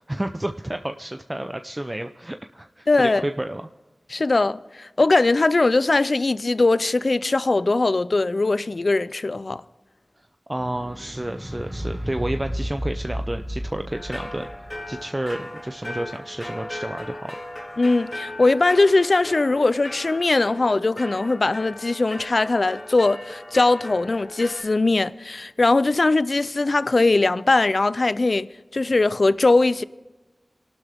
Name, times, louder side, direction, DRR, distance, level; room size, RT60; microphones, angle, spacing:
voice 1, 0.0-3.7 10.2-14.5 14.9-17.4, right 1 dB, 25° right, 0.6 m, -31 dB
voice 2, 2.9-3.2 4.1-9.6 17.8-28.5 28.7-29.8, left 3 dB, 60° left, 0.5 m, -20 dB
sound 1, 10.6-17.0 17.9-18.0, equal, 10° right, 1.8 m, -33 dB
sound 2, 13.9-24.6, left 1 dB, 25° left, 3.9 m, -37 dB
26.5 x 12.0 x 3.5 m
wide cardioid pair, 75°, 0 cm